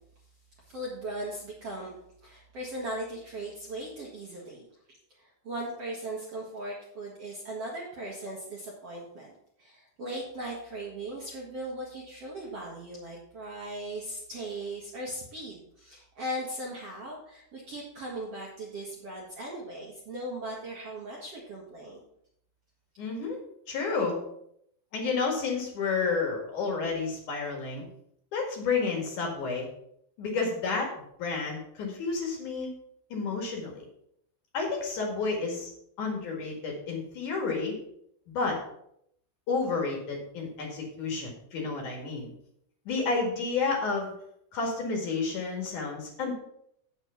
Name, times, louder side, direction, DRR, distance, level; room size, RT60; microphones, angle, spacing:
voice 1, 0.7-1.9 2.2-4.7 5.2-9.3 9.6-22.0, right 1 dB, 55° right, -4 dB, 1.9 m, -38 dB
voice 2, 23.0-23.4 23.7-24.2 24.9-27.8 28.3-29.7 30.2-30.9 31.2-32.7 33.1-33.8 34.5-35.7 36.0-37.8 38.3-38.6 39.5-42.3 42.9-44.1 44.5-46.3, left 4 dB, 55° left, 0 dB, 3.0 m, -30 dB
8.0 x 6.8 x 5.6 m, 0.71 s
omnidirectional pair, 4.6 m